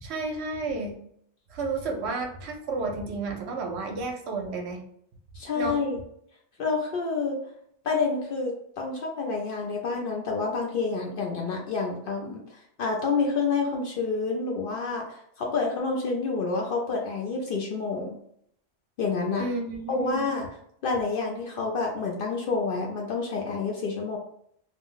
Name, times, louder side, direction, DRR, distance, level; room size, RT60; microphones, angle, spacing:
voice 1, 0.0-1.0 1.5-4.8 5.6-5.7 19.4-20.2, right 3 dB, 70° right, 1 dB, 0.8 m, -31 dB
voice 2, 5.3-6.0 6.6-7.4 7.8-12.4 12.8-18.2 19.0-19.5 19.9-20.5 20.8-24.2, left 4 dB, 60° left, 0 dB, 0.6 m, -28 dB
2.5 x 2.0 x 3.7 m, 0.68 s
omnidirectional pair, 1.2 m